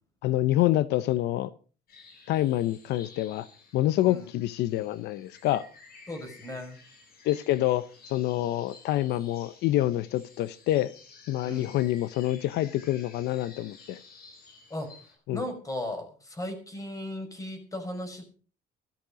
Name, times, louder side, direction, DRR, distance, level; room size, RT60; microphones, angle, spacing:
voice 1, 0.2-1.5 2.3-3.5 3.7-5.6 7.2-10.9 11.3-14.0 15.3-15.4, left 14 dB, 80° left, 16 dB, 0.7 m, -27 dB
sound 1, 1.9-15.2, left 4 dB, 65° left, 6.8 m, -53 dB
voice 2, 6.1-6.8 11.4-11.8 14.7-14.9 15.3-18.2, left 1 dB, 20° left, 6 dB, 5.7 m, -36 dB
13.5 x 13.5 x 5.1 m, 0.38 s
cardioid pair, 110°, 17 cm